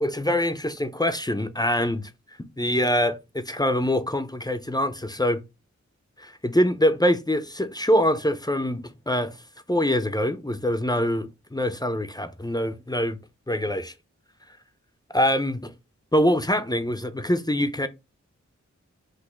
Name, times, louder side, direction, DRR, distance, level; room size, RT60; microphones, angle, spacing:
voice 1, 0.0-2.1 2.6-5.4 6.2-9.4 9.7-13.2 13.5-13.9 15.1-15.7 16.1-17.9, equal, 15° left, 0.5 m, -24 dB
4.2 x 2.6 x 4.3 m
wide cardioid pair, 45°, 29 cm